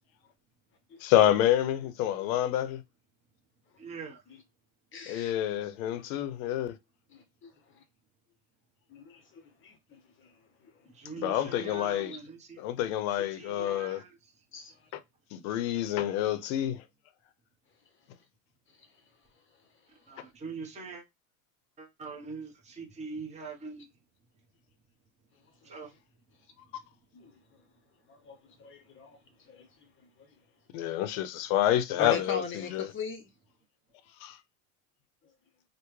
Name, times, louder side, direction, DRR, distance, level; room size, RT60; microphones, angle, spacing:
voice 1, 1.0-2.8 5.1-6.8 11.2-12.1 12.6-14.0 14.9-15.0 15.3-16.8 30.7-32.9 34.2-34.4, left 12 dB, 75° left, 0.7 m, -28 dB
voice 2, 3.8-4.2 10.9-12.6 13.1-14.3 20.1-21.0 21.8-23.9 25.6-25.9, right 4 dB, 15° right, 1.0 m, -43 dB
voice 3, 4.9-5.3 7.1-7.8 8.9-10.4 10.6-10.7 12.1-12.2 14.5-14.8 25.6-25.7 27.1-27.3 28.1-29.9 32.0-33.3, left 5 dB, 30° left, 0.7 m, -40 dB
3.4 x 2.2 x 3.1 m
supercardioid pair, 120°, 41 cm